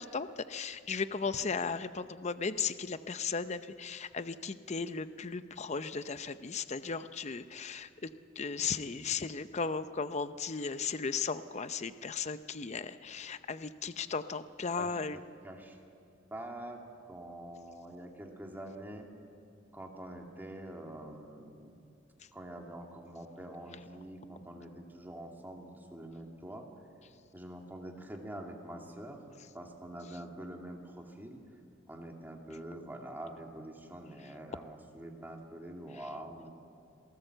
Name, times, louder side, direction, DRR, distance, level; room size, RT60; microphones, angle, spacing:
voice 1, 0.0-8.1 8.4-15.2, left 5 dB, 35° left, 12 dB, 0.6 m, -36 dB
voice 2, 15.4-15.8 16.3-16.8 17.1-19.1 19.7-21.7 22.3-26.7 27.3-29.2 29.5-31.4 31.9-36.5, right 1 dB, 10° right, 1 dB, 2.4 m, -45 dB
27.0 x 18.0 x 7.9 m, 2.3 s
head